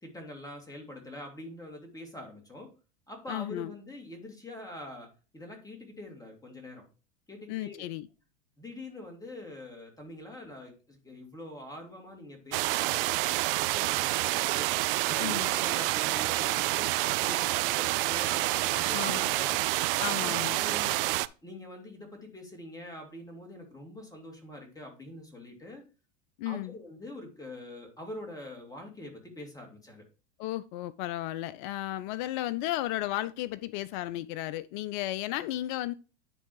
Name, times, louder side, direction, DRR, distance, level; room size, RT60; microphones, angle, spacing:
voice 1, 0.0-2.7 3.1-6.8 7.3-7.8 8.6-14.7 15.1-16.9 17.2-19.6 20.2-21.0 21.4-25.8 26.4-30.0, left 1 dB, 10° left, 2.4 m, -44 dB
voice 2, 3.3-3.7 7.5-8.1 15.2-15.5 18.9-19.3 20.0-20.6 26.4-26.7 30.4-35.9, left 15 dB, 45° left, 0.4 m, -34 dB
sound 1, 12.5-21.3, right 19 dB, 55° right, 0.4 m, -28 dB
10.0 x 3.4 x 4.6 m
hypercardioid pair, 90°, 34 cm